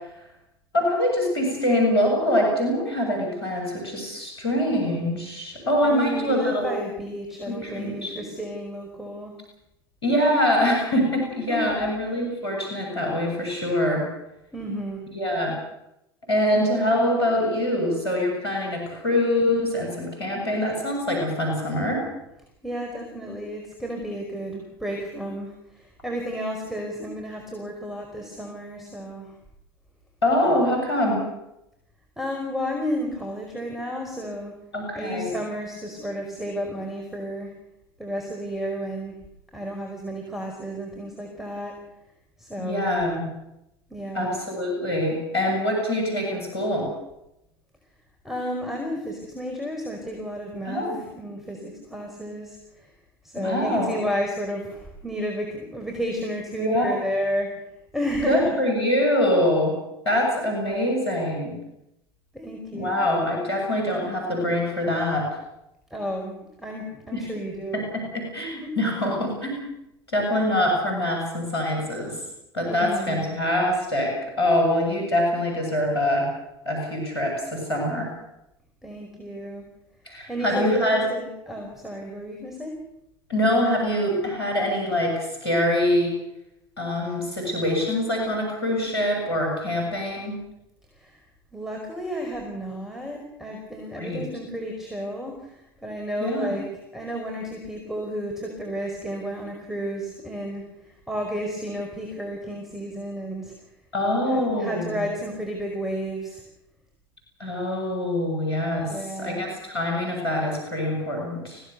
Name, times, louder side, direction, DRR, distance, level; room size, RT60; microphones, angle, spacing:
voice 1, 0.7-6.7 7.4-8.1 10.0-14.1 15.1-15.6 16.3-22.0 30.2-31.2 34.7-35.3 42.6-43.3 44.1-46.9 50.7-51.0 53.4-54.0 56.5-56.9 58.3-59.7 60.1-61.6 62.7-65.3 67.1-67.3 67.9-69.7 70.1-72.2 72.5-76.3 76.7-78.1 80.1-81.0 83.3-86.1 86.8-90.4 94.0-94.3 96.2-96.5 103.9-105.0 107.4-108.9 109.2-111.6, left 1 dB, 90° left, 1 dB, 7.3 m, -24 dB
voice 2, 5.8-9.4 11.4-11.8 14.5-15.1 22.6-29.3 32.2-34.6 34.9-37.6 38.0-39.2 39.5-41.8 42.4-43.0 43.9-44.3 48.2-52.9 53.2-57.6 57.9-58.6 60.7-60.9 62.3-63.1 65.9-67.9 68.6-68.8 72.7-73.2 78.8-79.6 80.3-82.8 90.9-91.2 91.5-103.5 104.3-106.4 108.8-109.5, equal, ahead, 2 dB, 5.1 m, -32 dB
24.5 x 17.5 x 6.9 m, 0.86 s
hypercardioid pair, 80°, 13 cm